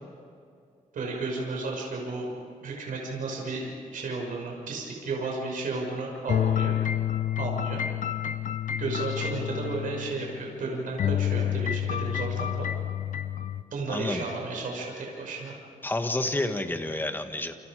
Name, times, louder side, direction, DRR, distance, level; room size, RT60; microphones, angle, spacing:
voice 1, 0.9-2.3 2.6-6.8 7.4-7.8 8.8-12.7 13.7-15.5, right 3 dB, 75° right, -1 dB, 6.0 m, -33 dB
sound 1, 6.3-10.6 11.0-13.6, left 10 dB, 65° left, 0.9 m, -29 dB
voice 2, 13.9-14.3 15.8-17.5, left 2 dB, 15° left, 6 dB, 1.8 m, -29 dB
28.5 x 28.5 x 5.1 m, 2.3 s
cardioid pair, 110°, 14 cm